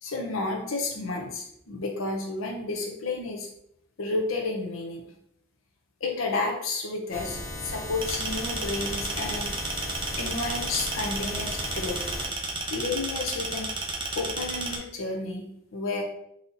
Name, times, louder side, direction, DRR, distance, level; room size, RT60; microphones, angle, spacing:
voice 1, 0.0-3.5 4.0-5.0 6.0-9.5 10.2-12.0 12.7-13.7 14.1-16.0, left 3 dB, 90° left, 1 dB, 0.8 m, -31 dB
sound 1, 7.1-12.3, left 1 dB, 50° left, 1.2 m, -37 dB
sound 2, 8.0-14.8, right 2 dB, 25° right, 0.5 m, -33 dB
4.1 x 2.8 x 4.0 m, 0.74 s
head